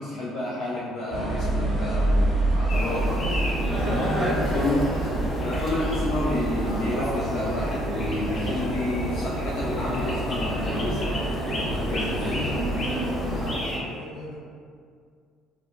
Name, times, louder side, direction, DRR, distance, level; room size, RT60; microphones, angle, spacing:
voice 1, 0.0-3.2 3.8-4.9 5.4-11.1 11.7-12.5, left 1 dB, 55° left, -6 dB, 0.3 m, -30 dB
sound 1, 1.1-13.5, right 1 dB, 25° right, 0.7 m, -27 dB
sound 2, 2.7-13.8, equal, 40° left, 0.7 m, -32 dB
voice 2, 13.8-14.3, left 1 dB, 80° left, -10 dB, 0.9 m, -41 dB
2.7 x 2.1 x 2.3 m, 2.2 s
hypercardioid pair, 55°, 0 cm